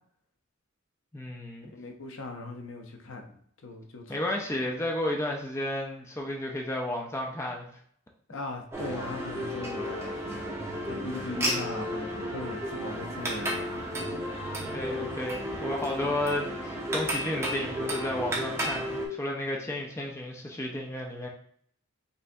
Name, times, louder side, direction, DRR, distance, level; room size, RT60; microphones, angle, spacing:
voice 1, 1.1-1.7 4.1-7.7 14.7-21.3, left 1 dB, 15° left, 0 dB, 0.5 m, -32 dB
voice 2, 1.7-3.3 3.6-4.1 8.3-14.0, left 2 dB, 60° left, 3 dB, 0.7 m, -39 dB
sound 1, 8.7-19.1, equal, 10° right, 0.9 m, -33 dB
5.4 x 3.3 x 2.6 m, 0.64 s
head